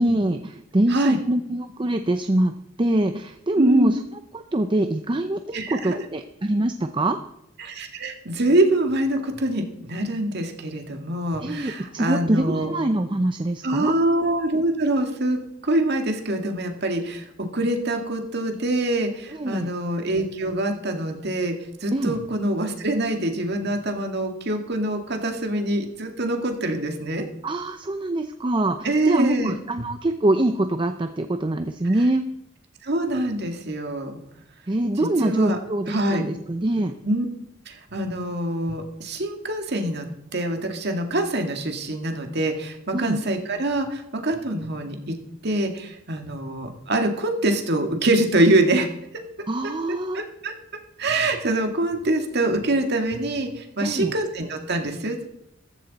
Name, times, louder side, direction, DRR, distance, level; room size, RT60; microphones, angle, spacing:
voice 1, 0.0-4.0 4.3-7.2 11.4-13.9 19.3-19.7 21.9-22.1 27.4-32.2 34.7-37.0 42.9-43.2 49.5-50.2 53.8-54.1, right 1 dB, 25° right, 8 dB, 0.6 m, -24 dB
voice 2, 3.6-3.9 5.5-6.0 7.6-12.7 13.6-17.3 17.5-21.6 21.8-27.3 28.8-29.6 32.8-34.2 35.2-35.6 35.9-36.2 37.0-37.3 37.7-40.1 40.3-45.2 45.4-48.9 50.1-50.5 51.0-55.3, right 1 dB, 55° right, 4 dB, 1.9 m, -24 dB
15.0 x 14.5 x 4.1 m, 0.81 s
head